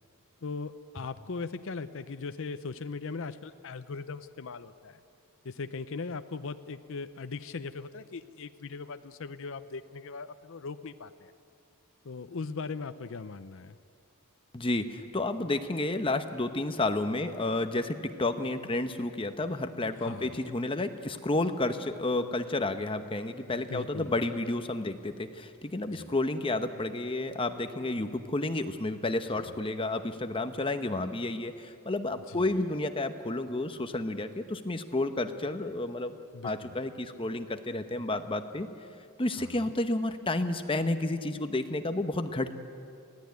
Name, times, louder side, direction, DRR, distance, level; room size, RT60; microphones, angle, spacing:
voice 1, 0.4-5.0 5.4-11.3 12.0-13.8 19.8-20.4 23.5-24.2 25.9-26.1 29.3-29.5 32.3-32.5 36.3-36.8 39.4-39.7, left 4 dB, 60° left, 10 dB, 0.6 m, -39 dB
voice 2, 14.5-36.2 36.4-38.7 39.2-42.5, left 2 dB, 25° left, 8 dB, 0.9 m, -31 dB
22.0 x 16.0 x 9.6 m, 2.4 s
head